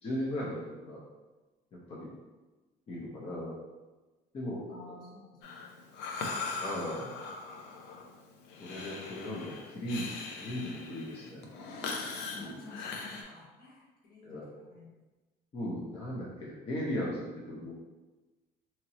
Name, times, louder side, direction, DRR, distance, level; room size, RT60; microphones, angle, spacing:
voice 1, 0.0-1.0 1.7-2.1 2.9-3.6 4.3-4.6 4.9-5.0 6.6-7.1 8.6-11.4 12.4-12.5 14.2-14.5 15.5-17.7, left 1 dB, 35° left, -6 dB, 0.6 m, -37 dB
voice 2, 4.7-5.7 12.3-14.9, left 2 dB, 60° left, -6 dB, 1.3 m, -50 dB
Breathing, 5.4-13.2, left 4 dB, 90° left, 0.5 m, -40 dB
2.9 x 2.8 x 2.7 m, 1.2 s
cardioid pair, 110°, 17 cm